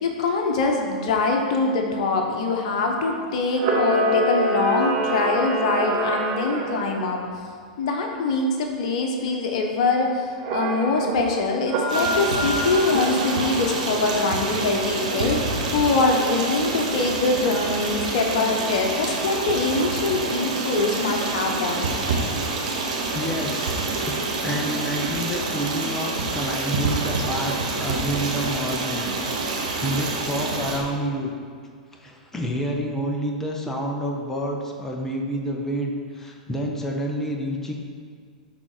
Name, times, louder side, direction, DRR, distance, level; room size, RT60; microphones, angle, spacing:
voice 1, 0.0-7.2 7.8-21.9, left 3 dB, 60° left, 2 dB, 1.2 m, -23 dB
Camera, 3.5-6.8 10.4-11.1 11.6-13.5, right 2 dB, 45° right, 1.4 m, -25 dB
Stream, 11.9-30.8, right 3 dB, 70° right, 1.5 m, -27 dB
voice 2, 23.1-24.1 24.4-29.1 29.8-31.3 31.9-37.7, equal, 10° left, 0 dB, 1.2 m, -29 dB
12.0 x 4.3 x 4.6 m, 2.1 s
hypercardioid pair, 100°, 4 cm